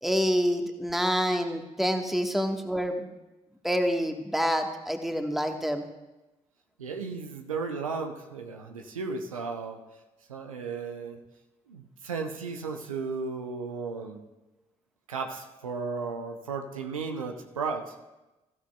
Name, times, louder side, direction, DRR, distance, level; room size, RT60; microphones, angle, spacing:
voice 1, 0.0-3.1 3.6-5.8, equal, ahead, 5 dB, 1.3 m, -27 dB
voice 2, 6.8-9.8 10.3-11.2 11.7-14.2 15.1-18.0, right 4 dB, 90° right, 4 dB, 0.6 m, -34 dB
15.0 x 12.0 x 2.3 m, 1.0 s
figure-of-eight pair, 40°, 17 cm